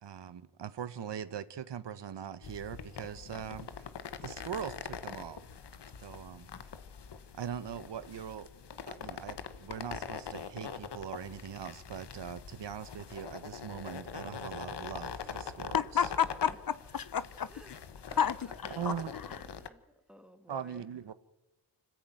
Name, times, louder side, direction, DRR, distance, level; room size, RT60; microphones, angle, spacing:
voice 1, 0.0-3.9 4.2-5.4 6.0-6.5 7.4-8.5 8.9-16.1 18.7-19.1 20.5-21.1, right 8 dB, 70° right, 1.1 m, -41 dB
sound 1, 2.4-19.7, left 6 dB, 65° left, 1.4 m, -43 dB
voice 2, 15.7-17.5 18.2-18.3 18.6-19.2, left 8 dB, 50° left, 0.9 m, -31 dB
voice 3, 17.5-18.5 19.0-19.8 20.1-20.9, equal, ahead, 2.2 m, -56 dB
25.5 x 15.0 x 9.2 m
wide cardioid pair, 85°, 43 cm